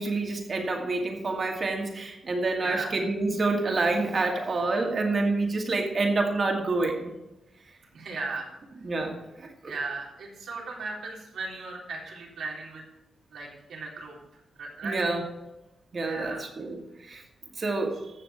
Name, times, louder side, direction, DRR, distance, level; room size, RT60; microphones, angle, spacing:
voice 1, 0.0-7.1 8.8-9.7 14.8-15.2 15.9-16.8 17.0-17.2 17.6-18.0, right 3 dB, 40° right, 2 dB, 2.2 m, -28 dB
voice 2, 2.6-2.9 7.9-8.5 9.7-12.8 13.3-14.2 14.6-15.0 16.0-16.4, right 3 dB, 80° right, -2 dB, 3.6 m, -36 dB
14.5 x 6.9 x 4.4 m, 0.99 s
cardioid pair, 110°, 0 cm